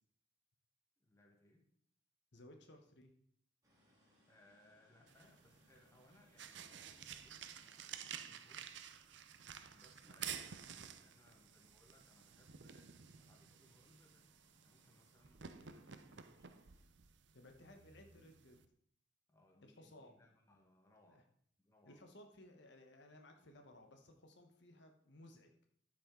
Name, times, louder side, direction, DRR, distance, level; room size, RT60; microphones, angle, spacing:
voice 1, 1.0-1.7 4.3-8.7 9.7-16.7 19.3-21.3 21.6-22.0, left 1 dB, 15° left, 1 dB, 1.3 m, -69 dB
voice 2, 2.3-3.1 8.3-8.4 17.3-18.6 19.6-20.1 21.1-21.2 21.8-25.5, left 1 dB, 65° left, 4 dB, 1.1 m, -60 dB
sound 1, 3.6-16.8, equal, 20° right, 2.5 m, -75 dB
sound 2, 5.1-18.7, right 8 dB, 65° right, 0.6 m, -52 dB
13.0 x 6.1 x 3.8 m, 0.65 s
head